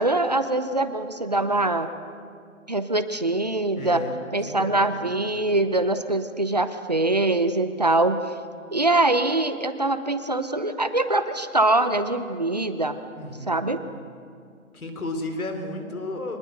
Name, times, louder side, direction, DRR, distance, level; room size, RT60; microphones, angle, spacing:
voice 1, 0.0-1.9 2.7-4.0 4.3-8.2 8.7-13.0 13.5-13.8, right 2 dB, 30° right, 10 dB, 0.8 m, -23 dB
voice 2, 3.7-4.2 4.6-5.1 13.2-13.7 14.7-16.4, left 2 dB, 90° left, 6 dB, 4.2 m, -33 dB
24.5 x 20.0 x 7.9 m, 2.2 s
hypercardioid pair, 180°, 42 cm